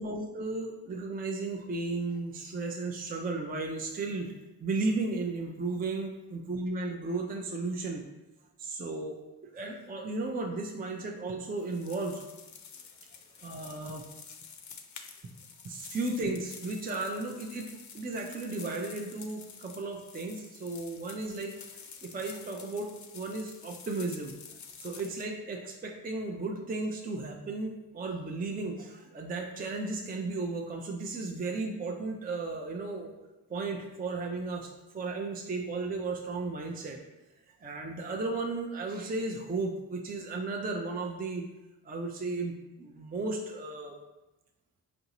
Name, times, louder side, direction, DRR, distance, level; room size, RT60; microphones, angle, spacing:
voice 1, 0.0-4.3 4.6-8.0 8.6-9.2 9.5-12.2 13.4-14.0 15.6-21.6 22.0-24.3 24.8-33.1 33.5-37.0 37.6-41.4 41.8-44.0, right 3 dB, 20° right, 2 dB, 0.5 m, -34 dB
sound 1, 11.6-25.3, left 6 dB, 40° left, 0.6 m, -49 dB
4.8 x 2.6 x 2.9 m, 1.0 s
supercardioid pair, 45°, 49 cm